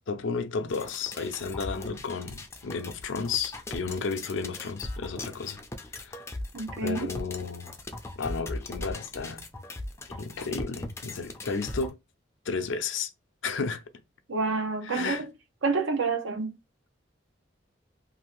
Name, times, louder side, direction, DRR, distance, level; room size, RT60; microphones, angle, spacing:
voice 1, 0.1-5.6 5.9-6.2 6.8-7.7 8.2-9.5 10.1-12.0 12.5-13.1 13.4-13.8 14.8-15.2, left 5 dB, 70° left, 0.5 m, -33 dB
sound 1, 0.7-11.9, left 2 dB, 15° left, 0.4 m, -39 dB
voice 2, 6.5-7.1 14.3-15.3 15.6-16.6, right 4 dB, 75° right, 0.7 m, -28 dB
2.7 x 2.5 x 3.0 m
head